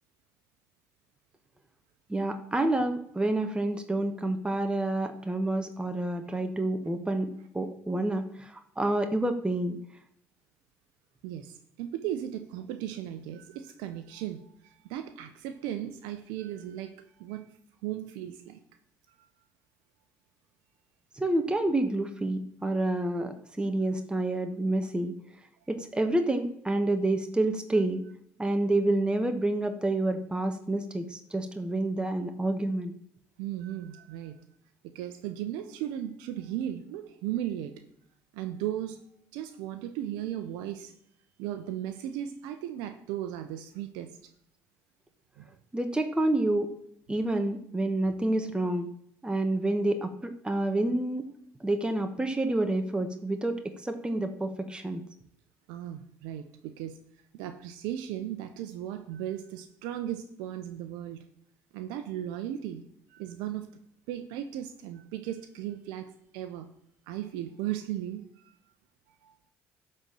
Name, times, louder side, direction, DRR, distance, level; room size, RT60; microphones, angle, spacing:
voice 1, 2.1-9.8 21.1-25.1 25.7-28.0 28.4-32.9 45.7-46.8 47.1-48.9 49.2-51.3 51.6-55.0, right 2 dB, 15° right, 6 dB, 1.2 m, -28 dB
voice 2, 11.2-17.5 17.8-18.6 33.4-34.4 34.9-37.8 38.3-39.0 39.3-40.9 41.4-44.1 45.4-45.5 55.7-57.0 57.3-61.2 61.7-62.8 63.1-63.7 64.1-66.7 67.1-68.5 69.2-69.3, right 11 dB, 80° right, 9 dB, 0.7 m, -36 dB
12.0 x 4.4 x 7.5 m, 0.69 s
hypercardioid pair, 65°, 7 cm